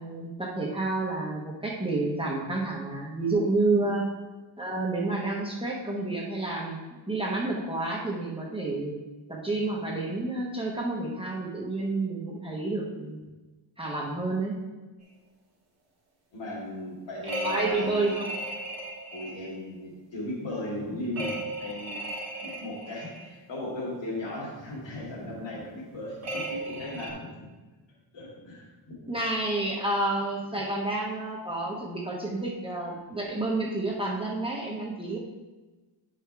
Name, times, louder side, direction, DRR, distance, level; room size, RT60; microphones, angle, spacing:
voice 1, 0.0-4.1 4.6-6.8 7.1-13.2 13.8-14.6 17.4-18.3 29.1-35.2, right 2 dB, 10° right, -4 dB, 1.0 m, -29 dB
voice 2, 16.3-18.2 19.1-22.0 22.4-27.5 28.1-29.1 30.5-30.6, left 1 dB, 60° left, -5 dB, 2.5 m, -37 dB
sound 1, 17.2-19.5 21.2-23.2 26.2-27.1, right 1 dB, 30° right, 1.4 m, -35 dB
10.0 x 5.0 x 3.4 m, 1.2 s
wide cardioid pair, 170°, 49 cm